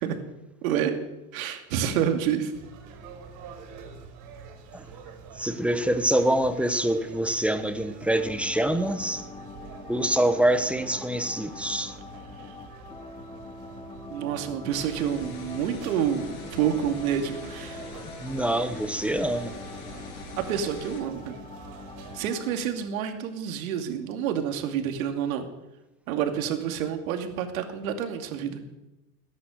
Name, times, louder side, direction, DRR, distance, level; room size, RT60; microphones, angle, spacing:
voice 1, 0.6-0.9 1.3-2.5 14.1-17.9 20.5-21.4 22.1-25.5 26.1-28.6, right 8 dB, 70° right, 5 dB, 2.6 m, -28 dB
sound 1, 2.5-22.2, right 5 dB, 45° right, 5.1 m, -46 dB
voice 2, 5.3-9.3 9.9-12.0 18.2-19.6, right 1 dB, 5° right, 9 dB, 1.1 m, -25 dB
sound 2, 8.1-22.5, left 3 dB, 10° left, 1.7 m, -44 dB
sound 3, 14.7-21.0, left 4 dB, 70° left, 4.8 m, -44 dB
19.5 x 10.5 x 6.5 m, 0.99 s
supercardioid pair, 120°, 43 cm